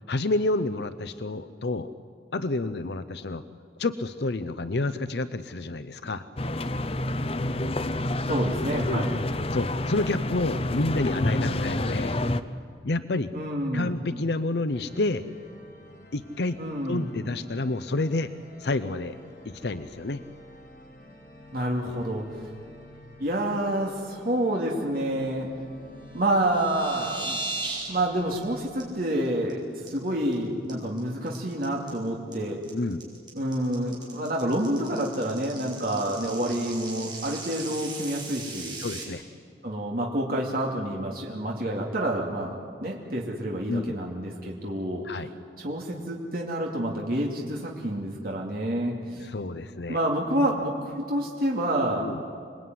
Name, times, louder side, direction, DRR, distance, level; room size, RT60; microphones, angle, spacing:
voice 1, 0.1-1.9 2.3-3.4 3.8-6.3 8.9-9.0 9.5-12.2 12.8-13.3 13.7-15.2 16.1-16.6 16.9-18.3 18.6-19.2 19.4-20.2 32.7-33.0 38.8-39.2 43.7-44.0 45.0-45.3 49.2-50.0 52.0-52.2, left 2 dB, 70° left, 11 dB, 0.7 m, -29 dB
sound 1, 6.4-12.4, left 1 dB, 35° left, 0.8 m, -28 dB
voice 2, 8.3-9.3 13.3-13.9 16.6-17.1 21.5-22.5 23.2-25.5 26.1-27.4 27.9-32.6 33.3-38.8 39.6-45.2 45.6-49.3 49.9-52.1, right 1 dB, 55° right, -2 dB, 2.7 m, -28 dB
sound 2, 14.7-28.9, left 1 dB, 50° left, 5.9 m, -50 dB
sound 3, 26.2-27.9 28.2-28.4 28.8-28.9 29.3-29.5 29.9-30.3 30.7-39.0, right 3 dB, 25° right, 6.4 m, -37 dB
27.0 x 21.0 x 9.4 m, 2.2 s
head